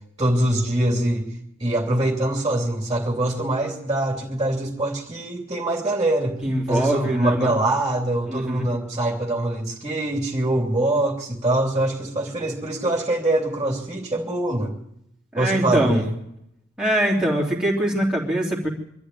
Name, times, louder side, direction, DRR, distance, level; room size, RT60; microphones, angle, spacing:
voice 1, 0.2-1.3 1.6-6.4 6.7-14.7 15.3-16.1, right 1 dB, 20° right, 1 dB, 3.0 m, -23 dB
voice 2, 6.4-7.5 8.3-8.7 15.3-16.0 16.8-18.7, right 1 dB, 5° right, -4 dB, 3.3 m, -23 dB
24.0 x 13.0 x 9.2 m, 0.77 s
head